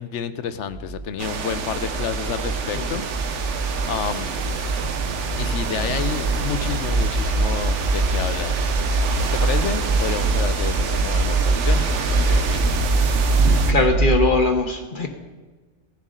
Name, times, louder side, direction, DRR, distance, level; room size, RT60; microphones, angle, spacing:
voice 1, 0.0-3.0 3.3-4.3 5.4-12.6, left 8 dB, 80° left, 12 dB, 1.0 m, -30 dB
sound 1, 0.7-14.2, right 2 dB, 35° right, 1.2 m, -23 dB
sound 2, 1.2-13.7, right 6 dB, 90° right, 1.2 m, -29 dB
sound 3, 4.2-13.9, right 5 dB, 65° right, 1.1 m, -36 dB
voice 2, 13.4-15.1, left 3 dB, 45° left, 4 dB, 1.2 m, -21 dB
17.5 x 10.5 x 3.8 m, 1.3 s
omnidirectional pair, 1.2 m